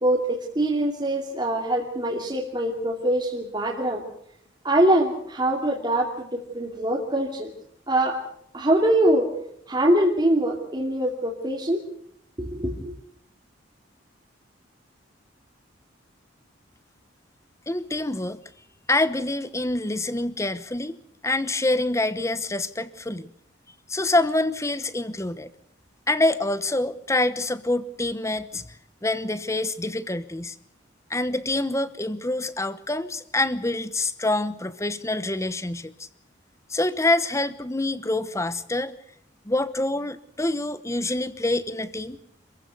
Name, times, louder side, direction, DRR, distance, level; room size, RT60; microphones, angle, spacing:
voice 1, 0.0-4.0 4.6-7.5 7.9-8.2 8.5-9.3 9.7-11.8 12.4-12.9, right 1 dB, 20° right, -2 dB, 2.6 m, -23 dB
voice 2, 17.7-18.4 18.9-21.0 21.2-23.3 23.9-25.5 26.1-28.7 29.0-30.6 31.1-35.9 36.7-38.9 39.4-42.2, left 2 dB, 15° left, 14 dB, 1.0 m, -26 dB
27.0 x 15.5 x 8.1 m, 0.69 s
head